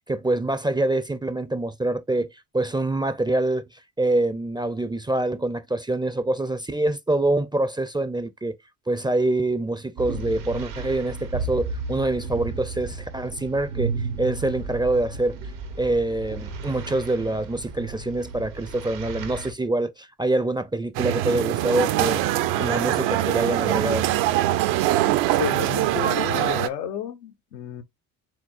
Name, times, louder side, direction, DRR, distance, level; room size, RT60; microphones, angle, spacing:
voice 1, 0.1-3.6 4.0-8.5 8.9-13.9 14.2-15.4 15.8-24.1, right 2 dB, 10° right, 0.4 m, -25 dB
sound 1, 10.0-19.5, right 4 dB, 90° right, 1.3 m, -34 dB
sound 2, 20.9-26.7, right 14 dB, 70° right, 0.7 m, -23 dB
voice 2, 25.4-27.8, left 10 dB, 85° left, 0.9 m, -31 dB
4.9 x 3.6 x 2.5 m
hypercardioid pair, 60°, 48 cm